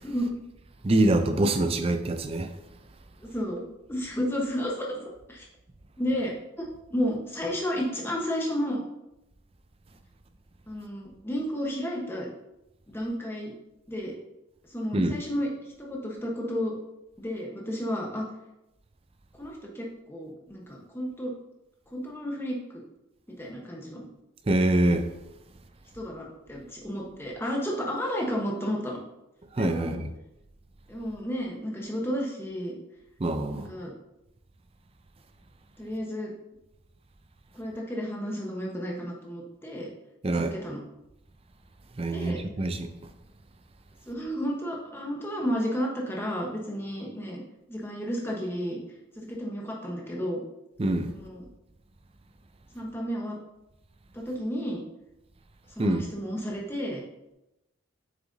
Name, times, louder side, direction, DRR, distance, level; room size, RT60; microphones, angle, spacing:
voice 1, 0.8-2.5 14.9-15.1 24.5-25.1 29.6-30.1 33.2-33.7 40.2-40.5 42.0-42.9 50.8-51.1 55.8-56.1, right 1 dB, 25° right, 0.4 m, -25 dB
voice 2, 3.2-3.6 3.9-5.0 5.3-5.5 6.0-8.8 10.7-12.3 12.9-13.5 13.9-14.1 14.7-15.5 15.8-16.7 17.2-18.2 19.4-21.3 21.9-22.8 23.3-24.0 25.9-29.0 29.6-30.0 30.9-32.8 33.5-33.9 35.8-36.3 37.5-39.9 40.3-40.8 42.1-42.4 44.1-47.4 47.7-48.8 49.1-50.4 51.1-51.5 52.7-53.4 54.1-54.8 55.8-57.0, equal, 10° left, 1.1 m, -32 dB
7.5 x 5.9 x 2.7 m
head